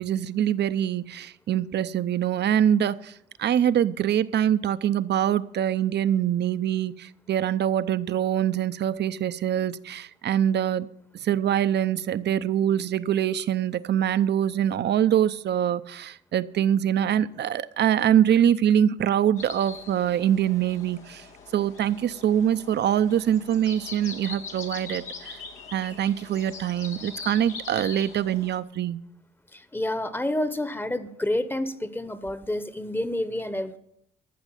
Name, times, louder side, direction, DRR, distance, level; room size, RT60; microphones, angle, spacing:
voice 1, 0.0-3.1 3.4-10.9 11.2-21.2 21.5-25.4 25.7-29.0, right 10 dB, 60° right, 0.7 m, -24 dB
sound 1, 19.4-28.6, left 5 dB, 90° left, 2.1 m, -42 dB
voice 2, 29.5-33.8, left 1 dB, 10° left, 1.0 m, -29 dB
14.5 x 6.2 x 9.9 m
cardioid pair, 90°, 20 cm